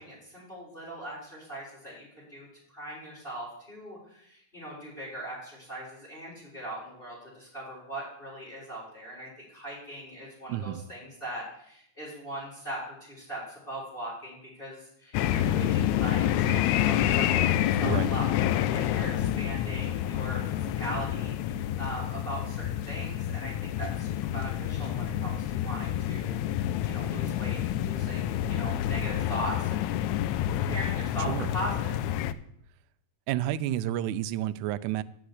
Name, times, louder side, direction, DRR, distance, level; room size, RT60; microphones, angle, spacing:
voice 1, 0.0-29.8 30.5-32.1, right 1 dB, 15° left, -6 dB, 3.7 m, -40 dB
voice 2, 10.5-10.8 17.8-18.1 31.3-31.5 33.3-35.0, right 12 dB, 80° right, 14 dB, 1.8 m, -30 dB
sound 1, 15.1-32.3, left 11 dB, 85° left, 1.7 m, -28 dB
10.0 x 5.7 x 8.0 m, 0.71 s
omnidirectional pair, 3.8 m